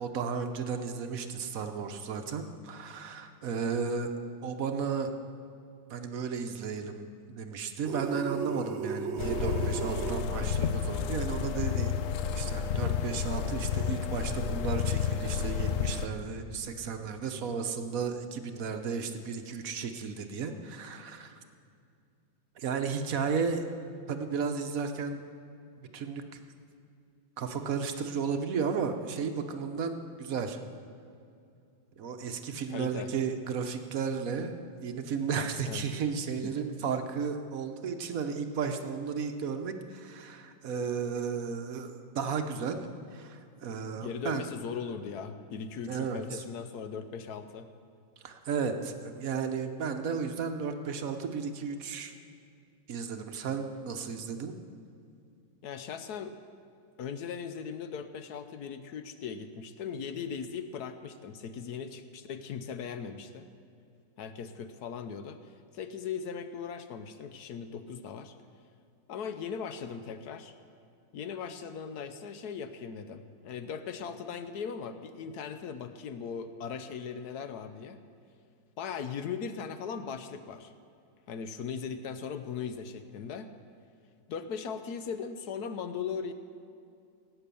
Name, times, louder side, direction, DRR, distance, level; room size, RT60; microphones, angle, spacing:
voice 1, 0.0-4.1 4.4-5.1 5.9-11.9 12.3-21.4 22.6-23.7 24.1-25.2 25.9-26.4 27.4-30.6 32.0-34.5 34.8-42.8 43.1-44.5 45.9-46.4 48.2-52.1 52.9-54.5, right 5 dB, 55° right, 7 dB, 1.2 m, -34 dB
sound 1, 7.9-10.3, right 7 dB, 80° right, 1.6 m, -35 dB
sound 2, 9.2-16.1, left 7 dB, 85° left, 0.7 m, -31 dB
voice 2, 32.7-33.1 35.7-35.8 36.4-36.5 44.0-47.7 55.6-56.4 57.0-63.5 64.2-65.4 65.7-68.4 69.1-70.5 71.1-78.0 78.8-80.7 81.3-83.5 84.3-86.3, left 6 dB, 65° left, 10 dB, 1.1 m, -38 dB
17.5 x 9.0 x 6.9 m, 2.5 s
omnidirectional pair, 2.1 m